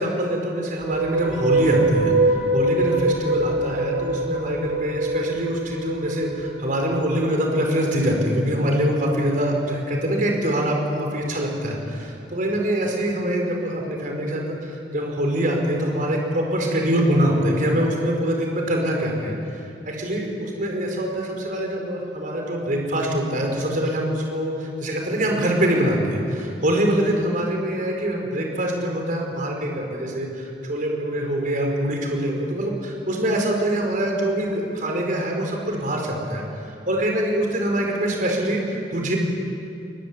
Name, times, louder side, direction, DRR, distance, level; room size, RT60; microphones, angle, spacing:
voice 1, 0.0-19.3 19.8-36.4 36.9-39.2, equal, 50° right, 1 dB, 4.8 m, -24 dB
sound 1, 0.7-8.0, right 2 dB, 70° right, 7.9 m, -24 dB
22.5 x 22.0 x 9.7 m, 2.6 s
head